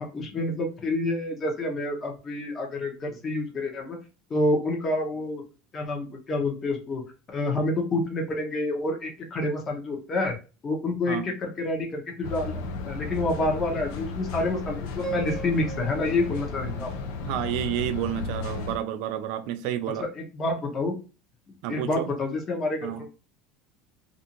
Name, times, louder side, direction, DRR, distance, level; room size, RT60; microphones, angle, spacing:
voice 1, 0.1-4.0 4.3-5.4 5.7-7.0 7.3-10.4 10.6-16.9 20.0-20.9 21.7-23.1, left 2 dB, 30° left, 0.9 m, -28 dB
sound 1, 12.2-18.8, left 4 dB, 75° left, 0.5 m, -34 dB
Piano, 15.0-18.0, right 7 dB, 5° right, 0.6 m, -40 dB
voice 2, 17.2-20.1 21.6-22.1 22.8-23.0, right 11 dB, 70° right, 0.4 m, -30 dB
2.6 x 2.4 x 2.8 m
supercardioid pair, 120°, 0 cm